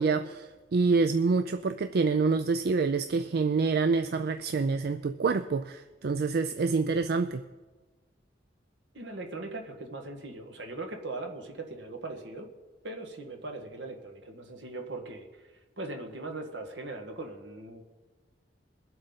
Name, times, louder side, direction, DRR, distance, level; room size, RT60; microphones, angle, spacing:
voice 1, 0.0-7.4, right 4 dB, 60° right, 10 dB, 0.4 m, -27 dB
voice 2, 8.9-12.5 12.8-15.4 15.8-17.8, right 2 dB, 75° right, 3 dB, 1.7 m, -40 dB
22.0 x 7.8 x 4.0 m, 1.3 s
head